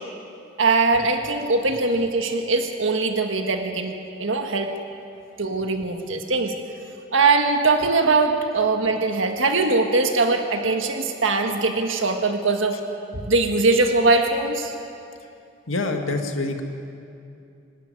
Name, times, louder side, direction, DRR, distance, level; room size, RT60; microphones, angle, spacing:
voice 1, 0.6-4.7 5.4-6.5 7.1-12.8 13.1-14.7, right 3 dB, 75° right, 4 dB, 1.6 m, -21 dB
voice 2, 15.7-16.6, left 2 dB, 90° left, 4 dB, 2.0 m, -26 dB
25.0 x 12.0 x 9.7 m, 2.6 s
head